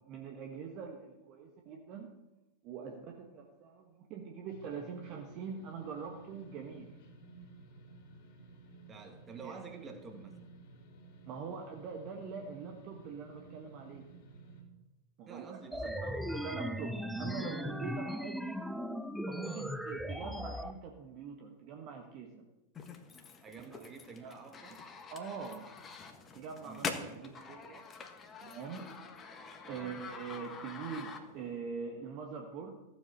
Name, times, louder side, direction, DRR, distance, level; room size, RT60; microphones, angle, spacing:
voice 1, 0.1-2.1 2.6-6.9 9.4-9.5 11.2-14.1 15.2-18.6 19.3-22.5 24.2-24.3 25.1-25.7 26.3-27.9 28.4-28.9 29.7-32.8, right 6 dB, 40° right, 3 dB, 1.4 m, -43 dB
sound 1, 4.5-14.6, right 3 dB, 45° left, 3.2 m, -55 dB
voice 2, 8.9-10.4 15.3-16.2 19.4-19.7 23.4-24.9 26.6-27.3 29.7-30.0, right 5 dB, 20° right, 5 dB, 2.2 m, -50 dB
sound 2, 15.7-20.7, equal, ahead, 0.6 m, -38 dB
sound 3, 22.7-31.6, left 5 dB, 25° left, 1.5 m, -45 dB
15.0 x 8.0 x 6.6 m, 1.0 s
figure-of-eight pair, 90°, 0 cm